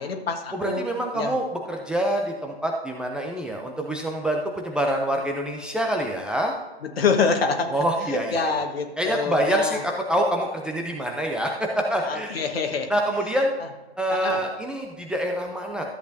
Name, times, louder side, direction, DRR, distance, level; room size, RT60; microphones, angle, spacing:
voice 1, 0.0-0.8 1.1-1.4 7.0-7.8 8.1-9.8 12.0-12.9 14.1-14.4, left 4 dB, 65° left, 5 dB, 1.6 m, -26 dB
voice 2, 0.5-6.6 7.7-8.6 9.0-12.3 12.9-13.5 14.0-15.8, right 1 dB, 5° right, 0 dB, 0.5 m, -26 dB
13.0 x 8.1 x 2.7 m, 1.1 s
figure-of-eight pair, 120°, 32 cm